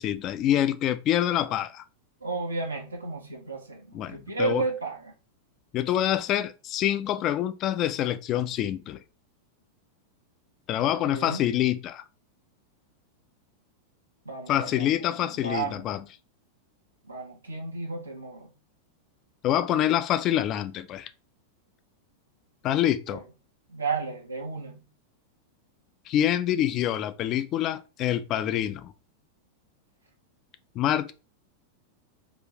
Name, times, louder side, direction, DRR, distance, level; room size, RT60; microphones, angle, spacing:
voice 1, 0.0-1.8 3.9-4.6 5.7-9.0 10.7-12.0 14.5-16.0 19.4-21.1 22.6-23.2 26.1-28.9 30.7-31.1, left 11 dB, 35° left, 0.4 m, -26 dB
voice 2, 2.2-5.1 10.8-11.4 14.2-15.8 17.0-18.5 23.1-23.2 23.7-24.9, right 3 dB, 80° right, 0.8 m, -33 dB
3.9 x 2.6 x 2.9 m
figure-of-eight pair, 90°, 0 cm